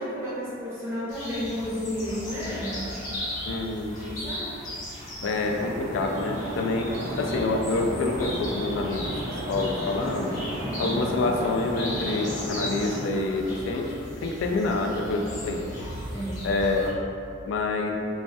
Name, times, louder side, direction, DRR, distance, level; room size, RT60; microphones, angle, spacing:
voice 1, 0.0-2.9 3.9-4.5 10.6-11.0 16.1-16.5, equal, 15° right, -10 dB, 0.6 m, -32 dB
sound 1, 1.1-16.9, equal, 45° left, 0.8 m, -37 dB
voice 2, 3.5-3.9 5.2-6.9 7.2-9.1 9.5-10.4 10.8-13.9 14.2-15.7 16.4-16.9 17.5-17.9, left 3 dB, 75° left, 2 dB, 0.3 m, -27 dB
sound 2, 5.4-13.0, right 1 dB, 85° right, 0.6 m, -34 dB
3.1 x 2.1 x 2.6 m, 2.6 s
head